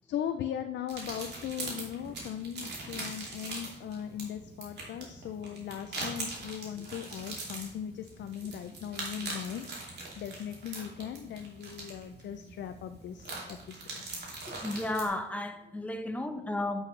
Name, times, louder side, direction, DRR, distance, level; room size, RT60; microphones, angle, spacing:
voice 1, 0.0-14.0, left 9 dB, 65° left, 0.5 m, -39 dB
sound 1, 0.9-15.1, right 2 dB, 55° right, 2.5 m, -42 dB
voice 2, 14.5-16.8, left 2 dB, 5° left, 0.8 m, -33 dB
8.2 x 6.3 x 3.2 m
cardioid pair, 90°, 20 cm